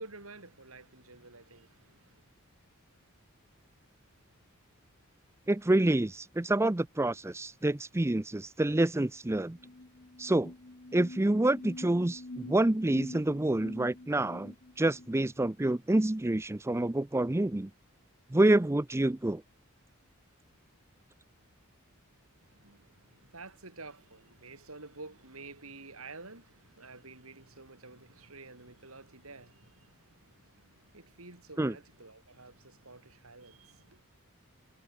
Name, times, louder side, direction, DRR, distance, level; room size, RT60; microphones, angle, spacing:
voice 1, 0.0-2.2 22.4-34.0, right 3 dB, 70° right, 6.2 m, -50 dB
voice 2, 5.5-9.6 10.2-10.5 10.9-17.7 18.3-19.4 31.6-31.7, right 1 dB, 10° right, 0.5 m, -27 dB
sound 1, 9.2-9.3 9.5-15.2, left 2 dB, 45° left, 1.2 m, -46 dB
head